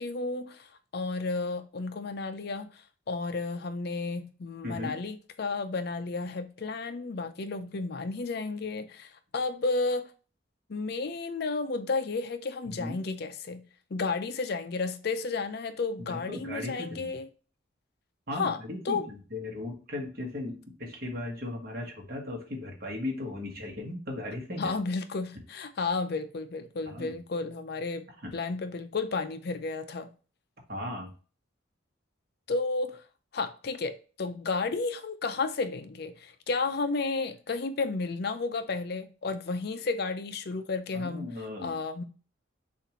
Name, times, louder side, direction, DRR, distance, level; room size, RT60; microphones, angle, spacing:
voice 1, 0.0-2.8 3.1-10.1 10.7-13.6 13.9-17.3 18.3-19.1 24.6-28.1 28.3-30.1 32.5-33.0 33.3-41.3 41.6-42.0, left 3 dB, 55° left, 0.5 m, -32 dB
voice 2, 4.6-5.0 12.6-13.0 16.0-17.2 18.3-24.7 26.9-27.2 28.1-28.4 30.7-31.1 40.9-41.7, left 2 dB, 50° right, 1.4 m, -37 dB
6.6 x 2.6 x 3.0 m
head